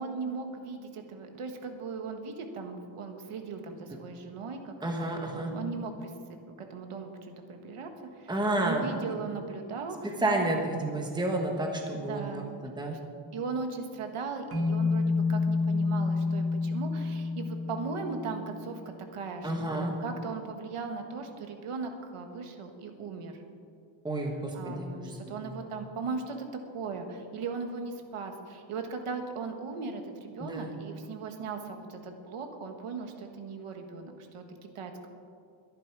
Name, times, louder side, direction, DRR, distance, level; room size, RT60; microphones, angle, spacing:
voice 1, 0.0-6.4 6.7-10.5 11.9-12.5 13.3-18.8 19.1-23.4 24.5-34.4 34.7-34.9, right 4 dB, 85° right, 5 dB, 1.6 m, -38 dB
voice 2, 4.8-5.5 8.3-9.1 10.2-12.3 12.6-13.0 19.4-19.9 24.0-25.2 25.4-25.5 30.4-30.7, right 1 dB, 10° right, 1 dB, 1.3 m, -30 dB
sound 1, 14.5-18.8, left 4 dB, 25° right, 1.9 m, -29 dB
22.0 x 10.5 x 4.8 m, 2.3 s
wide cardioid pair, 180°, 50 cm